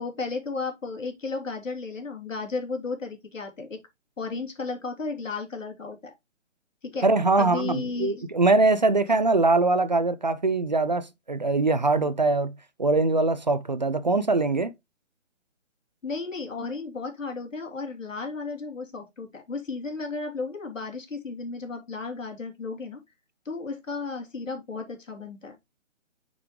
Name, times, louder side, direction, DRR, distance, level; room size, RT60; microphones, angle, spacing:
voice 1, 0.0-3.8 4.2-6.1 6.8-7.1 7.4-8.3 16.0-23.0 23.4-25.6, left 4 dB, 85° left, 3.2 m, -34 dB
voice 2, 7.0-12.5 12.8-14.7, right 3 dB, 35° right, 0.4 m, -22 dB
7.1 x 6.1 x 3.0 m
hypercardioid pair, 165°, 37 cm